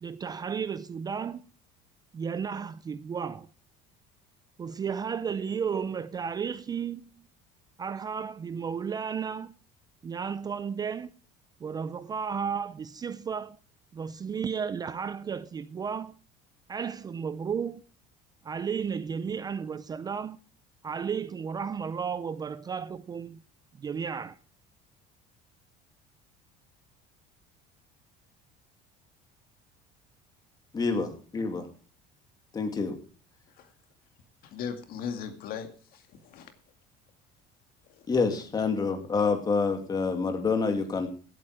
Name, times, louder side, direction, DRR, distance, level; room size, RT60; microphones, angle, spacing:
voice 1, 0.0-1.4 2.1-3.5 4.6-7.1 7.8-9.6 10.0-11.1 11.6-13.6 13.9-16.2 16.7-17.8 18.4-20.4 20.8-23.4 23.8-24.4, right 6 dB, 20° right, 0.5 m, -33 dB
voice 2, 30.7-31.7 32.5-33.0 38.1-41.1, left 4 dB, 20° left, 2.5 m, -27 dB
voice 3, 34.4-36.5 38.0-38.1, left 7 dB, 55° left, 2.3 m, -38 dB
16.0 x 8.8 x 4.9 m
cardioid pair, 150°, 18 cm